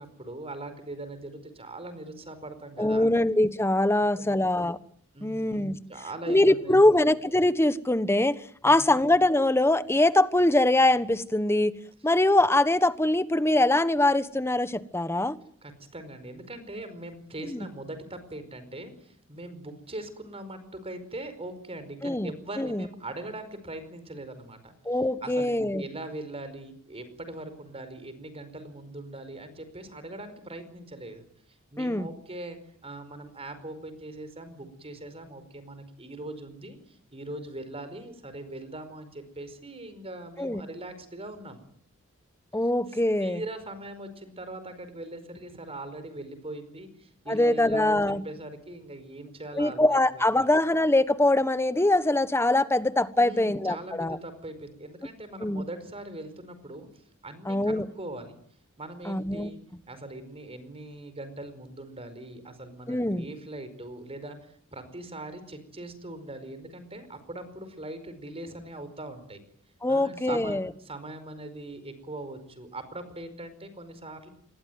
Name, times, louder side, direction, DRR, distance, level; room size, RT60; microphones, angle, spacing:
voice 1, 0.0-3.1 3.9-4.4 5.1-5.6 5.9-7.1 8.6-9.0 15.6-24.7 25.2-25.5 25.8-31.2 31.7-41.6 42.9-49.8 50.1-50.5 53.2-56.9 57.2-58.4 58.8-59.6 59.9-69.4 69.9-74.3, right 2 dB, 30° right, 5.0 m, -41 dB
voice 2, 2.8-4.8 5.2-5.8 6.3-11.7 12.0-15.4 17.5-17.7 22.0-22.3 22.6-22.8 24.8-25.8 31.8-32.1 40.4-40.6 42.5-43.4 47.3-48.2 49.6-54.2 55.4-55.6 57.5-57.9 59.0-59.5 62.9-63.3 69.8-70.7, left 1 dB, 10° left, 1.2 m, -23 dB
27.0 x 21.5 x 9.5 m
head